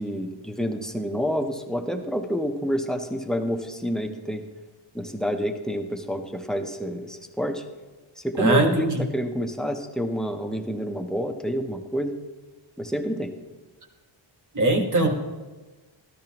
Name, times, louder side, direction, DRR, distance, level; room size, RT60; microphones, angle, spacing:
voice 1, 0.0-4.4 4.9-7.6 8.2-12.1 12.8-13.3, equal, ahead, 5 dB, 0.6 m, -28 dB
voice 2, 8.4-9.0 14.5-15.1, right 2 dB, 40° right, 3 dB, 1.4 m, -21 dB
13.0 x 12.0 x 2.9 m, 1.2 s
wide cardioid pair, 160°, 47 cm